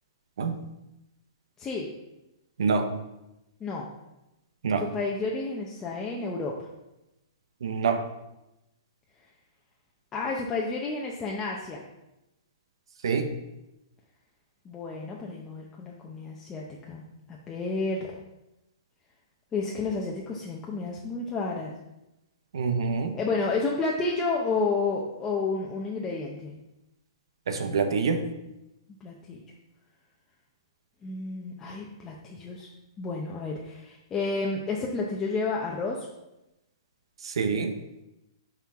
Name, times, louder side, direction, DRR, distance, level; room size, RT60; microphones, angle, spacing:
voice 1, 1.6-1.9 3.6-3.9 4.8-6.6 10.1-11.8 14.6-18.1 19.5-21.7 23.1-26.6 29.0-29.4 31.0-32.7 33.0-36.1, left 3 dB, 15° left, -2 dB, 0.7 m, -31 dB
voice 2, 2.6-2.9 4.6-4.9 7.6-8.0 13.0-13.3 22.5-23.2 27.5-28.2 37.2-37.7, right 5 dB, 85° right, 8 dB, 0.9 m, -26 dB
5.7 x 4.5 x 5.8 m, 0.93 s
hypercardioid pair, 160°, 3 cm